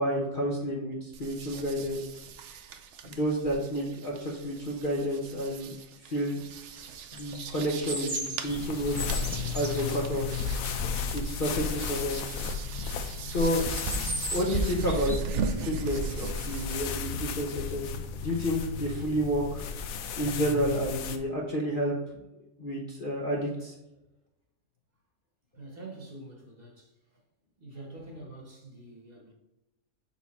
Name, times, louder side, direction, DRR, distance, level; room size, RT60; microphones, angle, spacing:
voice 1, 0.0-2.2 3.0-5.7 6.0-6.4 7.1-9.0 9.5-10.4 11.1-12.2 13.2-13.6 14.3-19.8 20.2-21.9 22.6-23.7, equal, 40° left, -3 dB, 0.8 m, -30 dB
sound 1, 1.1-16.8, right 5 dB, 65° right, 0.7 m, -38 dB
sound 2, 7.2-9.8 13.6-14.6 14.8-15.3, right 1 dB, 20° right, 0.7 m, -36 dB
sound 3, 8.5-21.2, left 5 dB, 70° left, 0.9 m, -34 dB
voice 2, 25.5-26.9 27.6-29.3, right 2 dB, 40° right, -1 dB, 1.3 m, -46 dB
5.9 x 4.4 x 4.1 m, 0.95 s
omnidirectional pair, 1.7 m